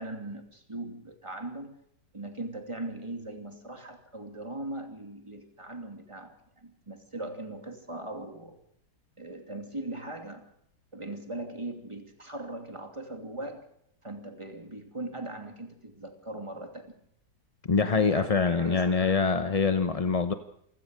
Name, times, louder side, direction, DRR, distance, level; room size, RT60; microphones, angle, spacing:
voice 1, 0.0-1.7 2.1-8.6 9.2-10.5 10.9-13.7 14.0-16.9 17.8-19.2, right 2 dB, 15° right, 5 dB, 2.6 m, -40 dB
voice 2, 17.7-20.3, left 5 dB, 40° left, 10 dB, 0.5 m, -24 dB
27.5 x 16.5 x 6.5 m, 0.74 s
omnidirectional pair, 1.8 m